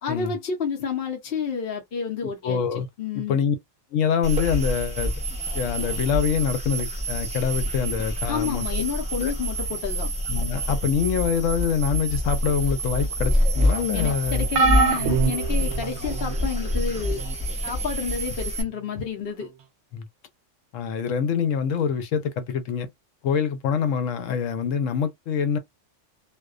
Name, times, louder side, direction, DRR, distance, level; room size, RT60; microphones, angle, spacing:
voice 1, 0.0-2.6 3.0-3.4 8.3-10.1 13.9-17.2 17.6-19.5, left 6 dB, 55° left, 0.9 m, -30 dB
voice 2, 2.4-2.9 3.1-3.6 3.9-5.1 5.5-8.8 9.2-9.3 10.2-14.5 19.9-20.1 20.7-22.9 23.2-25.6, left 7 dB, 85° left, 1.0 m, -25 dB
sound 1, 4.2-18.6, equal, 5° right, 0.7 m, -27 dB
sound 2, 14.5-16.3 17.1-17.3 18.6-18.7, right 4 dB, 70° right, 0.8 m, -24 dB
2.4 x 2.2 x 2.4 m
omnidirectional pair, 1.3 m